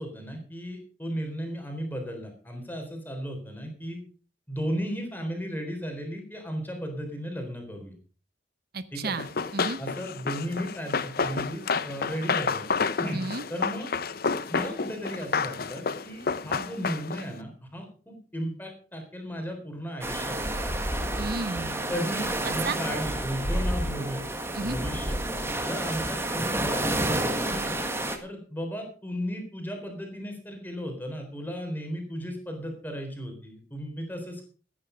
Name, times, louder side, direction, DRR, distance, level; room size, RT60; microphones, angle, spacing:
voice 1, 0.0-4.0 4.5-7.9 8.9-9.1 9.8-12.7 13.0-13.2 13.5-13.9 14.5-20.5 21.9-24.2 24.6-25.2 25.7-27.2 27.5-27.8 28.2-34.5, equal, 10° left, 4 dB, 3.8 m, -35 dB
voice 2, 8.7-9.8 13.1-13.4 21.2-21.9 22.4-22.8 24.5-24.8, right 3 dB, 55° right, 13 dB, 0.8 m, -33 dB
Run, 9.2-17.3, left 5 dB, 50° left, 0.7 m, -30 dB
sound 1, 20.0-28.2, right 1 dB, 15° right, 1.7 m, -29 dB
15.0 x 9.9 x 5.1 m, 0.39 s
head